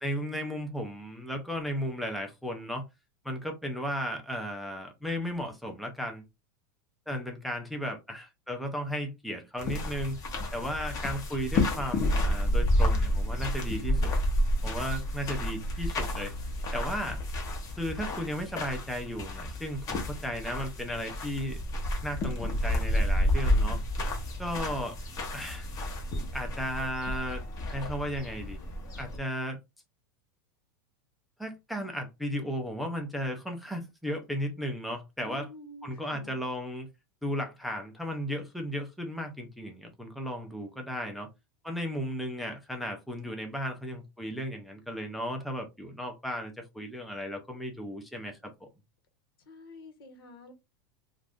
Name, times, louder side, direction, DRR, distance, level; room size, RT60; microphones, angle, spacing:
voice 1, 0.0-2.8 3.2-6.2 7.1-10.2 10.5-14.1 14.6-16.3 16.7-17.2 17.8-21.6 22.0-23.8 24.4-25.0 25.3-25.7 26.3-27.4 27.7-28.6 29.0-29.6 31.4-35.5 35.8-36.9 37.2-41.3 41.6-48.7, equal, ahead, 0.5 m, -35 dB
sound 1, 9.6-29.2, left 1 dB, 30° left, 0.8 m, -30 dB
voice 2, 13.9-14.2 35.2-36.4 49.5-50.5, left 2 dB, 85° left, 1.2 m, -48 dB
2.5 x 2.5 x 3.4 m
supercardioid pair, 150°, 12 cm